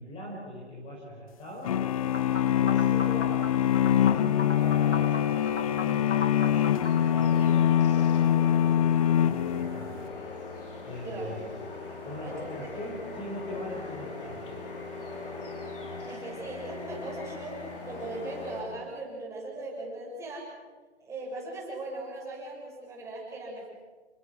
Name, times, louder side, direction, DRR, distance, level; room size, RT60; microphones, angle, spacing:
voice 1, 0.0-1.9 2.5-6.6 7.0-10.1 10.8-11.5 12.0-14.6, left 1 dB, 15° left, -2 dB, 4.9 m, -41 dB
sound 1, 1.7-10.0, left 10 dB, 30° left, 0.7 m, -24 dB
sound 2, 2.0-18.6, left 3 dB, 50° left, 5.9 m, -41 dB
sound 3, 2.1-7.3, left 5 dB, 80° left, 2.3 m, -38 dB
voice 2, 11.0-11.4 12.2-12.7 16.1-20.5 21.0-23.7, right 2 dB, 10° right, -3 dB, 6.9 m, -39 dB
29.0 x 21.5 x 6.3 m, 1.4 s
figure-of-eight pair, 135°, 34 cm